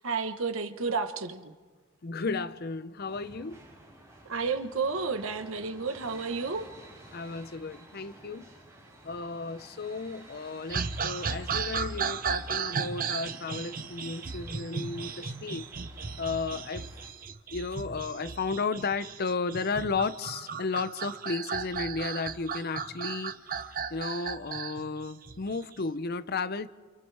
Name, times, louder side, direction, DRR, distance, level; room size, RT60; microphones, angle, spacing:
voice 1, 0.0-1.5 4.2-6.7, right 4 dB, 75° right, 8 dB, 1.3 m, -31 dB
voice 2, 2.0-3.6 7.1-8.5 9.0-15.7 16.2-16.8 17.5-23.3 23.7-26.7, left 4 dB, 45° left, 13 dB, 0.7 m, -33 dB
sound 1, 3.0-17.1, right 1 dB, 15° right, 5.3 m, -52 dB
sound 2, 10.7-25.8, right 6 dB, 40° right, 0.7 m, -35 dB
29.5 x 28.5 x 3.5 m, 1.5 s
head